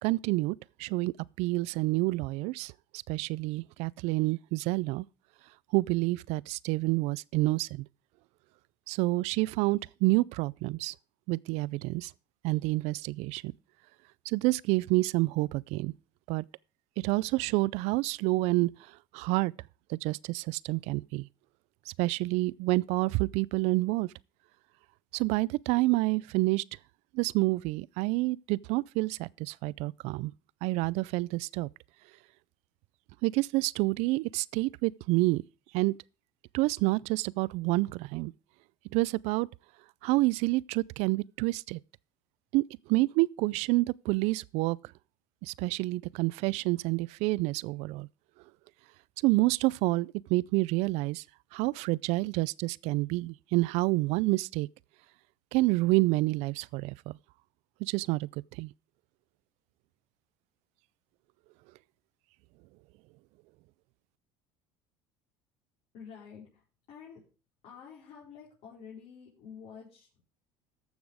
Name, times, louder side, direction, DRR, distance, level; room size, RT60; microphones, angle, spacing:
voice 1, 0.0-1.1 1.4-5.0 5.7-7.9 8.9-10.9 11.3-12.1 12.4-13.5 14.3-15.9 16.3-16.4 17.0-19.5 19.9-21.3 21.9-24.1 25.1-26.6 27.1-30.3 30.6-31.7 33.2-35.4 35.7-35.9 36.5-38.3 38.9-39.5 40.0-41.8 42.5-44.8 45.4-48.1 49.2-51.2 51.5-54.7 55.5-57.2 57.8-58.7, right 21 dB, 70° right, 0.4 m, -28 dB
voice 2, 65.9-67.2 67.6-70.2, left 7 dB, 60° left, 5.0 m, -49 dB
14.5 x 6.1 x 5.0 m
supercardioid pair, 100°, 11 cm